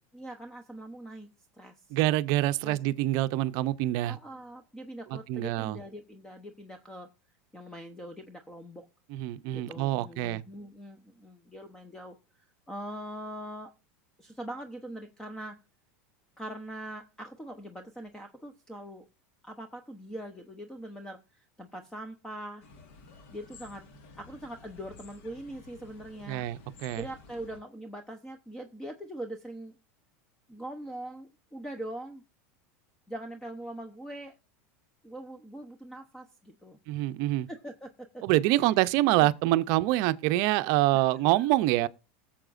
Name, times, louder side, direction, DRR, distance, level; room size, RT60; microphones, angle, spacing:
voice 1, 0.1-1.3 1.6-1.7 2.6-2.8 4.1-7.1 7.5-8.9 9.5-13.7 14.2-15.6 16.4-19.1 19.4-22.6 23.3-23.8 24.2-26.5 27.0-29.7 30.5-32.2 33.1-34.4 35.0-36.8 37.5-38.2 38.6-38.7 40.9-41.4, right 1 dB, 10° left, 0.8 m, -42 dB
voice 2, 1.9-4.2 5.3-5.8 9.1-10.4 26.3-27.1 36.9-37.5 38.2-41.9, right 16 dB, 55° right, 0.6 m, -26 dB
sound 1, 22.6-27.6, left 4 dB, 65° left, 1.7 m, -52 dB
20.0 x 7.1 x 2.5 m
supercardioid pair, 135°, 7 cm